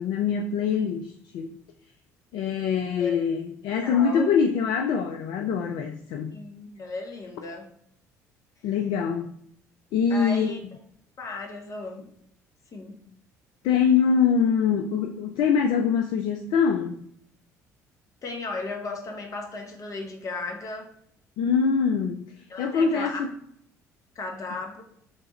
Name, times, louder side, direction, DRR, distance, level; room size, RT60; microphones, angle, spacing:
voice 1, 0.0-1.6 2.3-6.4 8.6-9.4 9.9-10.6 13.6-17.0 21.4-23.3, left 6 dB, 60° left, 5 dB, 0.4 m, -24 dB
voice 2, 3.8-4.2 6.3-7.7 10.1-10.6 11.2-12.1 12.7-13.0 18.2-20.9 22.5-23.2 24.1-24.8, left 3 dB, 40° left, 2 dB, 1.0 m, -35 dB
3.2 x 3.2 x 4.1 m, 0.69 s
figure-of-eight pair, 55°, 9 cm